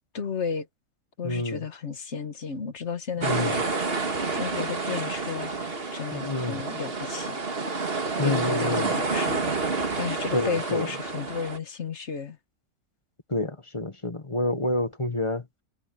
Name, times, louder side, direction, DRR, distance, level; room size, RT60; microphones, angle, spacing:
voice 1, 0.1-0.7 1.2-3.6 4.3-7.4 8.2-9.5 10.0-12.4, left 5 dB, 55° left, 1.6 m, -33 dB
voice 2, 1.2-1.6 3.2-3.6 6.1-6.6 8.2-8.9 10.3-10.9 13.3-15.5, left 2 dB, 20° left, 1.5 m, -28 dB
sound 1, 3.2-11.6, right 3 dB, 45° right, 2.0 m, -29 dB
omnidirectional pair, 1.5 m